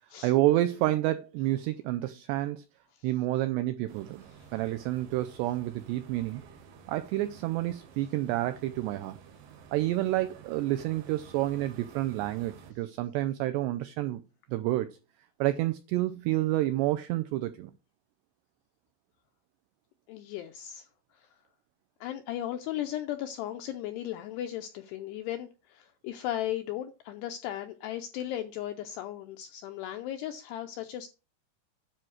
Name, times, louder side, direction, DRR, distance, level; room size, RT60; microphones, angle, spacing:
voice 1, 0.2-2.6 3.0-4.2 4.5-6.4 6.9-9.2 9.7-14.2 14.5-14.9 15.4-17.7, right 15 dB, 90° right, 2.4 m, -29 dB
sound 1, 3.9-12.7, right 6 dB, 65° right, 2.4 m, -52 dB
voice 2, 20.1-20.8 22.0-31.1, left 12 dB, 85° left, 2.4 m, -36 dB
10.0 x 4.5 x 6.4 m
omnidirectional pair, 5.5 m